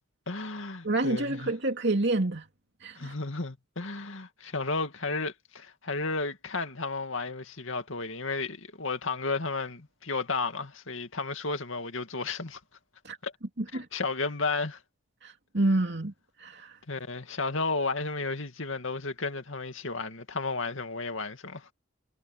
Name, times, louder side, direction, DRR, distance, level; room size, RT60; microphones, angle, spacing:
voice 1, 0.3-1.5 3.0-12.6 13.2-13.3 13.7-14.8 16.9-21.7, left 3 dB, 75° left, 2.3 m, -33 dB
voice 2, 0.8-2.4 2.8-3.1 13.0-13.2 13.6-13.9 15.2-16.1 16.4-16.7, right 2 dB, 55° right, 2.7 m, -28 dB
head